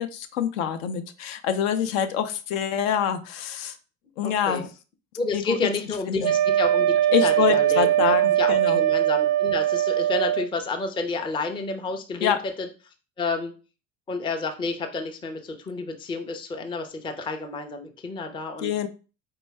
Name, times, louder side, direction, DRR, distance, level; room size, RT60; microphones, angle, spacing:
voice 1, 0.0-3.8 4.2-4.7 5.3-5.7 6.1-6.3 7.1-8.8 12.2-12.4 18.6-18.9, left 9 dB, 60° left, 8 dB, 0.6 m, -26 dB
voice 2, 4.2-4.7 5.2-12.7 13.2-13.5 14.1-18.7, left 3 dB, 10° left, 5 dB, 0.4 m, -30 dB
Wind instrument woodwind instrument, 6.2-10.5, right 11 dB, 55° right, 0.5 m, -21 dB
4.4 x 2.3 x 3.2 m, 0.34 s
figure-of-eight pair, 65°, 44 cm